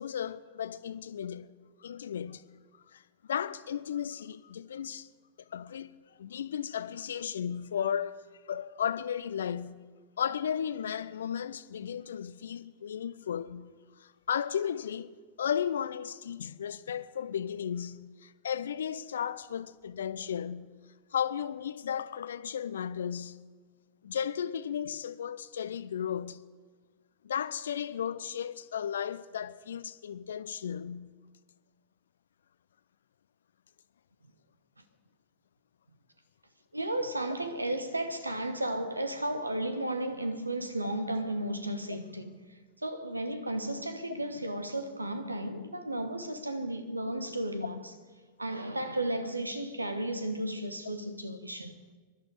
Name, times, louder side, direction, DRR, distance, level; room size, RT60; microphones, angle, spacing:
voice 1, 0.0-1.5 1.8-2.4 2.9-5.1 5.5-8.2 8.5-9.8 10.2-13.7 14.0-20.8 21.1-23.4 24.0-26.4 27.2-31.1, left 8 dB, 65° left, 0.5 m, -35 dB
voice 2, 36.7-47.8 48.4-52.0, right 1 dB, 85° right, 1.2 m, -34 dB
21.5 x 12.0 x 4.9 m
figure-of-eight pair, 90°, 0 cm